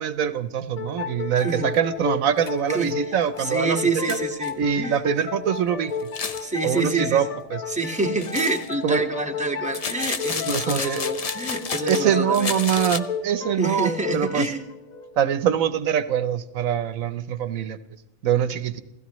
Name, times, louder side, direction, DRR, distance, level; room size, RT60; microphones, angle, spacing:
voice 1, 0.0-3.8 4.1-4.2 4.6-5.9 6.6-7.3 7.5-7.6 8.8-9.0 10.5-11.0 11.9-14.5 15.2-17.8 18.2-18.8, right 8 dB, 80° right, 13 dB, 1.2 m, -23 dB
sound 1, 0.8-16.1, left 6 dB, 80° left, 1.5 m, -33 dB
sound 2, 1.7-1.8 2.4-2.5 2.9-3.0 3.4-3.5 4.1-4.5 6.0-6.5 8.2-8.7 9.7-12.1 12.3-13.0, left 5 dB, 40° left, 0.6 m, -31 dB
voice 2, 2.7-5.0 6.4-7.3 7.7-12.5 13.5-14.7, right 3 dB, 5° right, 2 dB, 1.5 m, -27 dB
29.0 x 16.5 x 3.1 m, 0.93 s
omnidirectional pair, 1.4 m